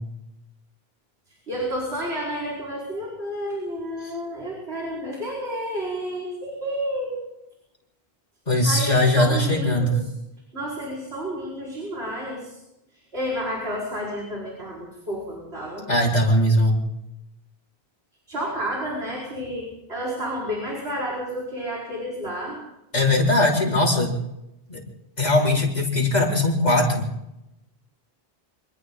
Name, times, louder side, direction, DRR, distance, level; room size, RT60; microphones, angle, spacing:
voice 1, 1.5-7.3 8.6-10.0 10.5-12.6 12.9-15.8 18.3-22.6, equal, 90° right, -3 dB, 5.3 m, -30 dB
voice 2, 8.5-10.0 15.9-16.8 22.9-24.2 24.7-24.8 25.2-27.1, left 1 dB, 40° left, -2 dB, 4.8 m, -20 dB
27.0 x 26.5 x 4.0 m, 0.88 s
omnidirectional pair, 1.0 m